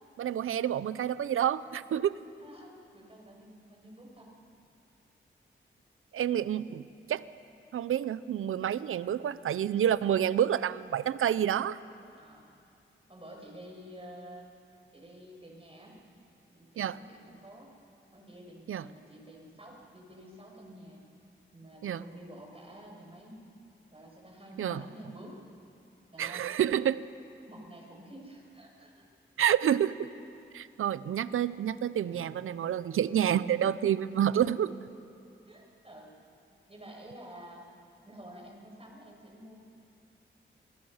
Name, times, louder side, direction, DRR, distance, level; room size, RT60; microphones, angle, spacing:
voice 1, 0.2-2.1 6.1-7.2 7.7-11.8 16.8-17.0 18.7-18.9 21.8-22.0 24.6-24.8 26.2-27.0 29.4-30.1 30.5-34.7, right 10 dB, 85° right, 16 dB, 0.6 m, -28 dB
voice 2, 2.4-4.3 12.1-12.5 13.1-14.5 14.9-16.0 16.5-17.7 18.1-21.0 21.5-23.4 23.9-25.4 26.1-26.5 27.5-29.1 35.5-36.1 36.7-37.7 38.0-39.6, equal, 30° right, -1 dB, 7.1 m, -49 dB
27.5 x 20.0 x 5.7 m, 2.6 s
cardioid pair, 50°, 21 cm